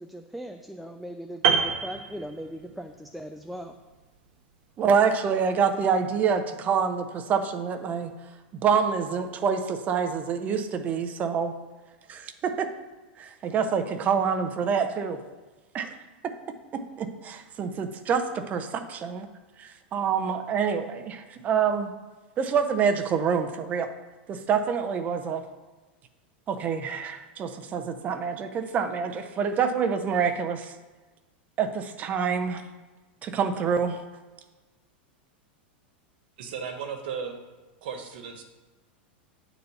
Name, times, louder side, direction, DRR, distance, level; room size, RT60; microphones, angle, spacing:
voice 1, 0.0-3.8, equal, ahead, 5 dB, 0.4 m, -39 dB
Piano, 1.4-2.9 3.2-3.4, right 7 dB, 55° right, 1.1 m, -26 dB
voice 2, 4.8-8.1 8.6-11.5 12.1-12.7 13.2-15.2 15.7-15.9 16.2-16.3 16.7-19.3 19.6-21.9 22.4-23.9 24.3-25.4 26.5-30.7 31.6-32.6 33.2-34.0, right 6 dB, 30° right, 8 dB, 0.8 m, -26 dB
voice 3, 36.4-37.4 37.8-38.4, right 6 dB, 70° right, 5 dB, 1.4 m, -35 dB
9.2 x 4.1 x 7.0 m, 1.2 s
supercardioid pair, 140°, 6 cm